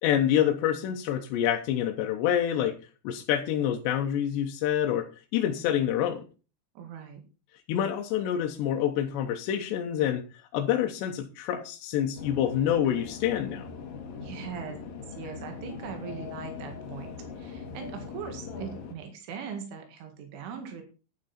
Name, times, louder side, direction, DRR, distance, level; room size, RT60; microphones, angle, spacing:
voice 1, 0.0-2.8 3.0-6.2 7.7-10.2 10.5-13.7, left 10 dB, 75° left, 3 dB, 3.0 m, -27 dB
voice 2, 6.8-7.2 14.2-20.8, right 7 dB, 90° right, 4 dB, 4.4 m, -40 dB
sound 1, 12.2-18.9, left 5 dB, 55° left, 3.1 m, -41 dB
11.0 x 10.0 x 4.3 m, 0.34 s
omnidirectional pair, 5.4 m